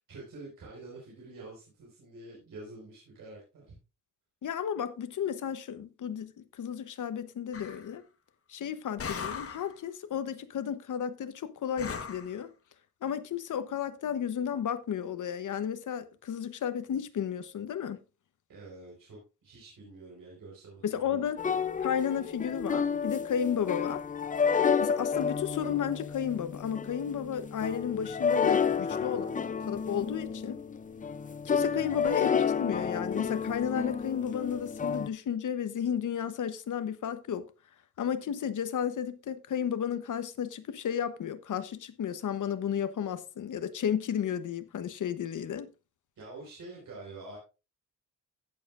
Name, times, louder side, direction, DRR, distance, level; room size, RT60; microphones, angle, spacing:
voice 1, 0.0-3.7 18.5-21.3 31.8-32.0 46.2-47.4, right 2 dB, 80° right, 4.8 m, -47 dB
voice 2, 4.4-8.0 8.5-12.5 13.0-18.0 20.8-21.4 21.8-24.0 24.8-29.3 29.7-30.6 31.4-37.5 38.0-45.7, left 8 dB, 65° left, 1.0 m, -33 dB
sound 1, 7.5-7.9 9.0-9.7 11.8-12.3, left 6 dB, 45° left, 1.2 m, -38 dB
sound 2, 21.4-35.1, left 6 dB, 25° left, 0.5 m, -30 dB
15.5 x 7.4 x 2.5 m
wide cardioid pair, 150°, 33 cm